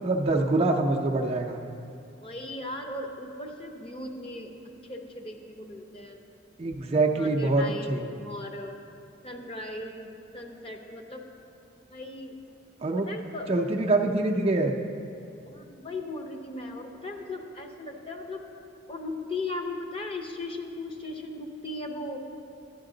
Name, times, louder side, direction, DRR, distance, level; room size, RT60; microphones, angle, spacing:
voice 1, 0.0-1.6 6.6-8.0 12.8-13.1 13.5-14.8, right 2 dB, 30° right, 2 dB, 0.5 m, -25 dB
voice 2, 2.2-6.2 7.1-8.8 9.2-11.2 11.9-12.4 13.0-13.5 15.4-18.5 18.9-22.2, left 2 dB, 30° left, 2 dB, 0.7 m, -37 dB
11.0 x 10.0 x 3.8 m, 2.6 s
head